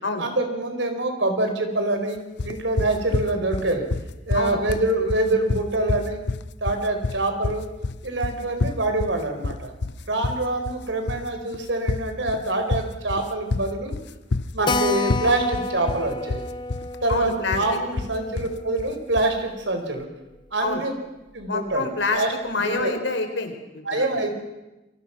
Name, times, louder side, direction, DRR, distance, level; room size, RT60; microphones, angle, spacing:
voice 1, 0.2-3.9 4.2-6.2 6.6-7.6 8.0-9.7 10.1-13.9 14.5-16.4 17.0-20.1 20.5-20.9 21.3-22.3 22.6-23.0 23.8-24.3, right 2 dB, 75° right, 5 dB, 4.6 m, -25 dB
sound 1, 2.4-19.4, left 3 dB, 65° left, 0.7 m, -29 dB
Keyboard (musical), 14.7-19.7 20.0-20.1 20.4-20.5 20.7-20.8 21.4-21.7, left 3 dB, 25° left, 0.8 m, -31 dB
voice 2, 17.1-17.6 20.6-20.8 21.5-24.1, left 3 dB, 85° left, 6 dB, 4.1 m, -27 dB
28.5 x 23.0 x 6.0 m, 1.0 s
head